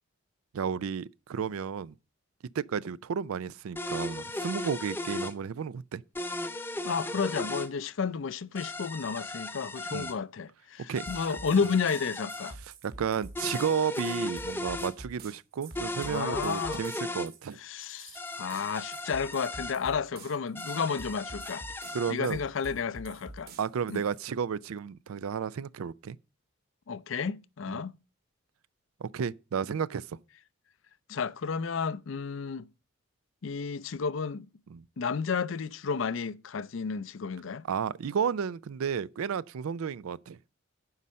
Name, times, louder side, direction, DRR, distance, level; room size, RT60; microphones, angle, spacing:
voice 1, 0.5-1.9 2.5-6.0 9.9-10.1 10.9-11.1 12.8-17.6 21.9-22.4 23.6-26.2 27.7-27.8 29.0-30.2 34.7-34.8 37.7-40.5, right 7 dB, 80° right, 0.4 m, -32 dB
sound 1, 3.8-5.4 6.2-7.7 8.6-10.2 11.0-12.5 13.4-14.9 15.8-17.3 18.2-19.8 20.6-22.1, left 2 dB, 10° left, 0.5 m, -36 dB
voice 2, 6.8-12.6 16.1-16.9 17.6-21.7 22.1-23.5 23.9-24.0 26.9-27.9 31.1-32.7 33.4-34.5 35.0-37.6, left 5 dB, 65° left, 0.5 m, -32 dB
sound 2, 11.1-24.2, right 2 dB, 45° right, 1.6 m, -47 dB
9.6 x 5.4 x 7.4 m
head